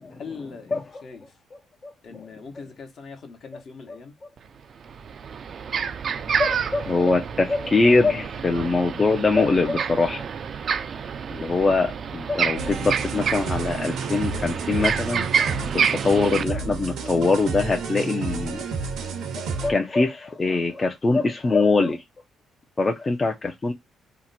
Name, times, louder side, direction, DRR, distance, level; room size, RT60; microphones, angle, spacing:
voice 1, 0.1-1.3 2.0-4.2, left 5 dB, 55° left, 1.0 m, -41 dB
sound 1, 4.4-4.5 4.8-16.4, right 7 dB, 55° right, 0.4 m, -28 dB
voice 2, 6.4-10.2 11.3-15.3 15.9-18.6 19.4-22.0 22.8-23.7, left 3 dB, 30° left, 0.5 m, -23 dB
sound 2, 12.6-19.7, right 5 dB, 80° right, 0.7 m, -31 dB
2.8 x 2.1 x 4.0 m
cardioid pair, 90°, 0 cm